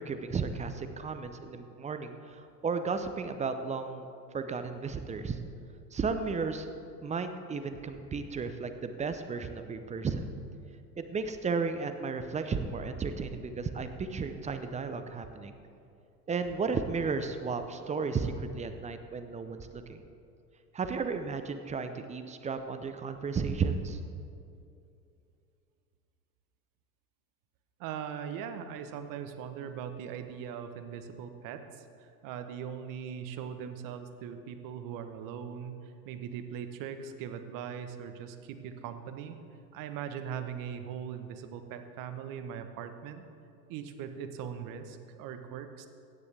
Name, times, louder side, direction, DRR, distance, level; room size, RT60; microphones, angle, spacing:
voice 1, 0.0-4.1 4.3-5.4 5.9-6.7 7.0-10.3 11.0-15.6 16.3-20.0 20.7-24.0, right 5 dB, 15° right, 8 dB, 0.6 m, -34 dB
voice 2, 27.8-39.4 39.7-43.3 43.7-45.9, right 8 dB, 40° right, 8 dB, 1.1 m, -40 dB
16.0 x 9.9 x 3.4 m, 2.6 s
hypercardioid pair, 90°, 48 cm